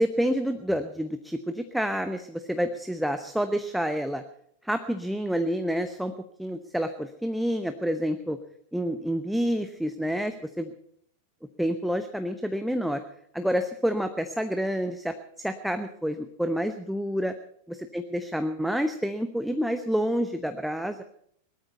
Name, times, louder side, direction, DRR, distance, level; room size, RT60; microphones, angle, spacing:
voice 1, 0.0-4.2 4.6-6.1 6.4-8.4 8.7-10.7 11.6-13.0 13.3-17.3 17.7-21.0, equal, ahead, 8 dB, 0.9 m, -28 dB
19.0 x 13.0 x 5.4 m, 0.68 s
figure-of-eight pair, 90°, 0 cm